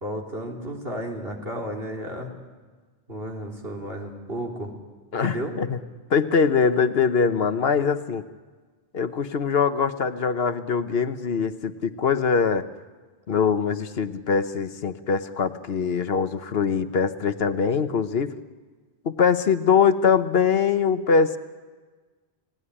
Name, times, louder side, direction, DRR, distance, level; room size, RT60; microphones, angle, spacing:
voice 1, 0.0-2.3 3.1-4.7 5.2-5.5, equal, 65° right, 0 dB, 3.7 m, -33 dB
voice 2, 5.1-5.8 6.1-8.2 8.9-12.7 13.3-18.3 19.0-21.4, left 6 dB, 65° left, 11 dB, 1.2 m, -22 dB
30.0 x 18.0 x 10.0 m, 1.4 s
omnidirectional pair, 1.1 m